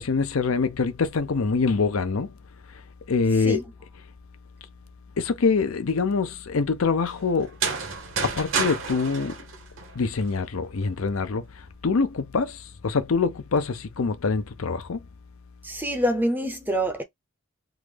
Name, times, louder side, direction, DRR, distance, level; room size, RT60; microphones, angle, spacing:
voice 1, 0.0-2.3 3.1-3.6 5.2-7.6 8.2-9.4 9.9-15.0, left 4 dB, 80° left, 0.6 m, -25 dB
sound 1, 7.4-10.3, right 5 dB, 65° right, 0.9 m, -30 dB
voice 2, 15.6-17.0, right 1 dB, 10° right, 0.5 m, -26 dB
3.7 x 2.0 x 3.2 m
head